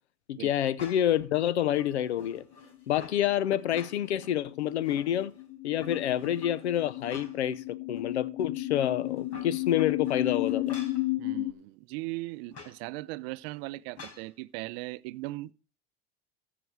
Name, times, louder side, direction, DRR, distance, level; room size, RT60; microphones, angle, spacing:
voice 1, 0.3-2.4 2.9-5.3 5.6-10.8, left 11 dB, 90° left, 0.7 m, -28 dB
sound 1, 0.8-1.2 1.7-3.2 3.6-4.3 4.6-5.4 5.8-7.6 8.0-8.1 9.1-11.1 12.5-12.8 14.0-14.3, left 4 dB, 50° left, 4.5 m, -46 dB
sound 2, 3.1-11.5, left 16 dB, 35° left, 0.8 m, -34 dB
voice 2, 11.2-15.5, right 20 dB, 65° right, 0.6 m, -38 dB
14.5 x 6.1 x 4.6 m
hypercardioid pair, 85°, 32 cm